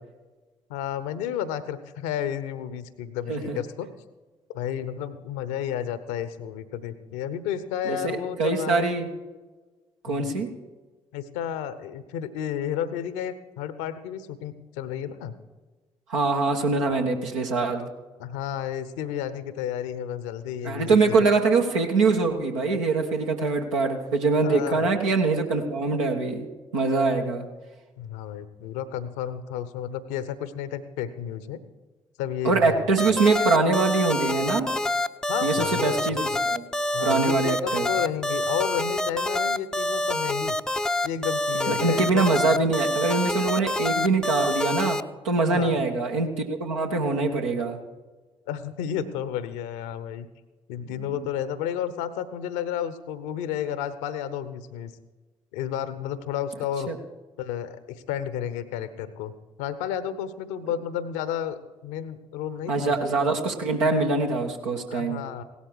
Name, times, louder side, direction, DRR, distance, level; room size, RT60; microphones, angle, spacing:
voice 1, 0.7-3.9 4.5-8.9 10.1-10.3 11.1-15.3 18.2-21.1 24.4-24.9 28.0-31.6 32.2-33.1 35.3-36.0 36.9-40.6 41.0-42.5 45.4-45.8 48.5-50.3 50.7-54.9 55.5-56.9 57.4-59.3 59.6-62.9 64.9-65.4, left 9 dB, 70° left, 14 dB, 0.9 m, -32 dB
voice 2, 7.8-9.1 10.0-10.5 16.1-17.9 20.6-26.5 26.7-27.5 32.4-34.7 35.4-36.6 37.0-37.9 41.7-47.8 50.8-51.1 56.9-57.0 62.7-65.2, right 3 dB, 80° right, 1 dB, 1.3 m, -24 dB
sound 1, 33.0-45.0, left 1 dB, 5° left, 0.6 m, -26 dB
17.0 x 12.5 x 4.7 m, 1.3 s
figure-of-eight pair, 40°, 16 cm